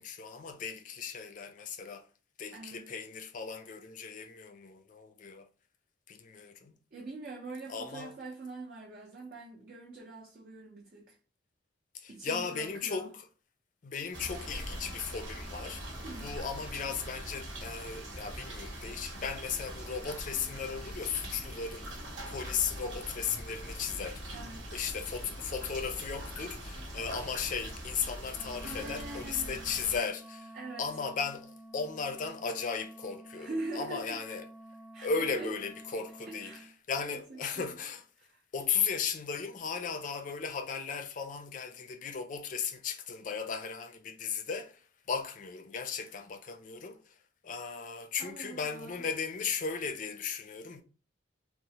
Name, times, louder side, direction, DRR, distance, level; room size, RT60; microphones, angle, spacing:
voice 1, 0.0-2.0 2.4-5.5 6.1-6.7 7.7-8.1 11.9-13.1 13.8-15.8 16.2-24.2 24.7-30.5 30.8-33.5 33.7-34.4 35.0-36.5 36.9-38.0 38.5-44.8 45.1-47.0 47.4-50.8, left 6 dB, 40° left, 0.4 m, -36 dB
voice 2, 2.5-2.8 6.9-11.2 12.1-13.1 16.0-16.3 24.3-24.8 28.6-29.5 30.5-30.9 33.3-34.2 34.9-35.6 35.9-36.7 37.1-37.7 38.2-38.4 48.2-49.1, right 2 dB, 50° right, 0.5 m, -43 dB
sound 1, 14.1-30.0, right 1 dB, 85° right, 1.0 m, -42 dB
Wind instrument woodwind instrument, 28.3-36.7, right 1 dB, 5° right, 0.7 m, -51 dB
2.9 x 2.0 x 2.8 m
head